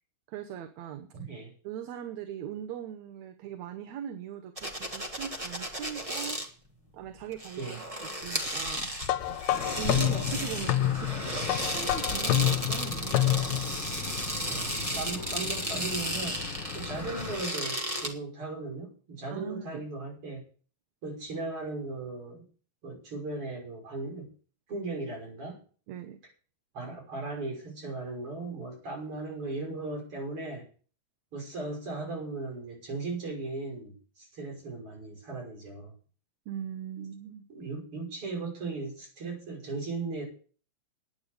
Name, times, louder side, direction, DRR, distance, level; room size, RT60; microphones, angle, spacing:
voice 1, 0.3-1.1 1.6-6.4 6.9-8.9 9.2-9.3 9.8-13.9 19.3-19.8 25.9-26.2 36.5-37.4, right 9 dB, 75° right, 8 dB, 2.2 m, -40 dB
voice 2, 1.1-1.5 7.6-7.8 9.3-9.4 9.9-10.1 14.5-16.5 16.7-20.4 21.0-22.4 22.8-24.3 24.7-25.6 26.7-30.6 31.3-35.9 37.5-40.2, right 3 dB, 45° right, 0 dB, 6.7 m, -37 dB
sound 1, 4.6-6.5 7.3-18.1, equal, 20° right, 0.8 m, -34 dB
sound 2, 9.0-13.8, left 13 dB, 80° left, 2.1 m, -28 dB
sound 3, 9.5-17.4, left 6 dB, 50° left, 1.7 m, -39 dB
10.5 x 9.5 x 6.7 m, 0.41 s
omnidirectional pair, 3.4 m